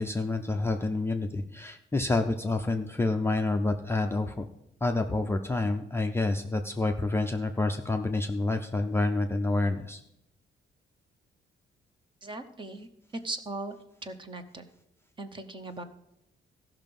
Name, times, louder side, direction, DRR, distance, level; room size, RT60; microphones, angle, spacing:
voice 1, 0.0-4.4 4.8-10.0, left 2 dB, 10° left, 4 dB, 0.4 m, -28 dB
voice 2, 12.2-12.9 13.2-13.8 14.0-14.7 15.2-15.8, right 2 dB, 25° right, 9 dB, 0.8 m, -38 dB
15.0 x 5.8 x 5.3 m, 0.80 s
cardioid pair, 170°, 20 cm